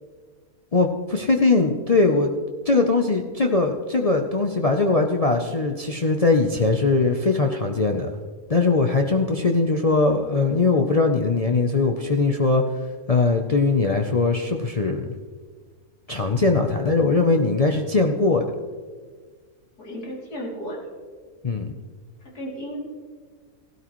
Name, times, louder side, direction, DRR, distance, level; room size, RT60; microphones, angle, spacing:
voice 1, 0.7-2.3 2.7-8.1 8.5-12.6 13.1-15.1 16.1-18.5 21.4-21.7, left 3 dB, 50° left, 2 dB, 0.4 m, -20 dB
voice 2, 19.8-20.8 22.3-22.8, equal, 85° left, -3 dB, 3.4 m, -33 dB
16.5 x 12.5 x 3.1 m, 1.5 s
omnidirectional pair, 1.6 m